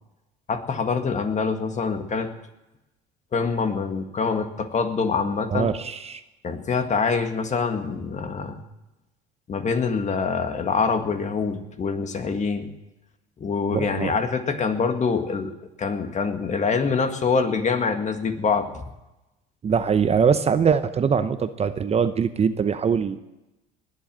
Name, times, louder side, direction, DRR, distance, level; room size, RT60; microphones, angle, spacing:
voice 1, 0.5-2.3 3.3-5.7 6.4-8.6 9.5-12.7 13.4-15.5 15.8-18.8, left 5 dB, 35° left, 7 dB, 1.9 m, -25 dB
voice 2, 5.5-6.2 13.7-14.1 19.6-23.2, right 6 dB, 30° right, 11 dB, 0.8 m, -22 dB
20.0 x 7.8 x 7.5 m, 0.98 s
supercardioid pair, 90°, 21 cm